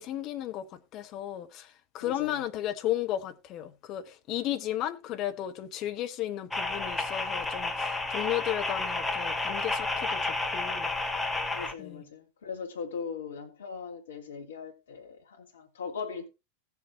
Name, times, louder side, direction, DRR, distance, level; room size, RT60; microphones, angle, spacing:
voice 1, 0.0-10.9 11.8-12.0, left 12 dB, 35° left, 1.2 m, -34 dB
voice 2, 2.0-2.5 11.5-16.3, left 6 dB, 65° left, 1.9 m, -39 dB
sound 1, 6.5-11.7, left 2 dB, 5° left, 1.3 m, -31 dB
17.0 x 7.3 x 3.0 m
figure-of-eight pair, 90°, 0 cm